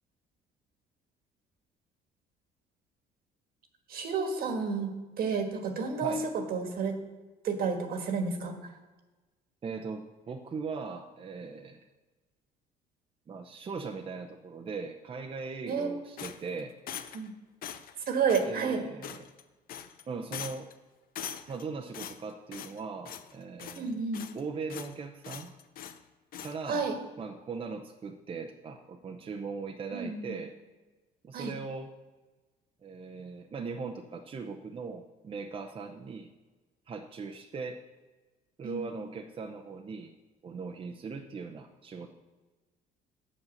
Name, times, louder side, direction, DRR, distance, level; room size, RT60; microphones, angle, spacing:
voice 1, 3.9-6.2 6.5-7.0 7.4-8.5 15.7-16.0 17.1-17.3 18.1-18.8 23.7-24.3 26.7-27.0 29.9-30.3 31.3-31.5 38.6-39.0, right 5 dB, 65° right, 5 dB, 1.5 m, -31 dB
voice 2, 9.6-11.8 13.3-16.7 18.4-19.2 20.1-20.7 21.5-24.0 24.3-25.5 26.4-26.9 27.2-30.5 31.2-31.9 32.8-36.3 36.9-37.8 38.6-40.1 40.4-42.1, right 4 dB, 30° right, 3 dB, 0.6 m, -39 dB
sound 1, 16.2-17.3 17.6-18.0 18.3-18.5 19.0-19.4 19.7-20.0 20.3-20.7 21.1-21.6 21.9-22.8 23.0-23.3 23.6-24.4 24.7-24.9 25.2-26.0 26.3-26.6, left 9 dB, 60° left, 0.6 m, -42 dB
8.2 x 5.4 x 7.1 m, 1.2 s
cardioid pair, 110°, 17 cm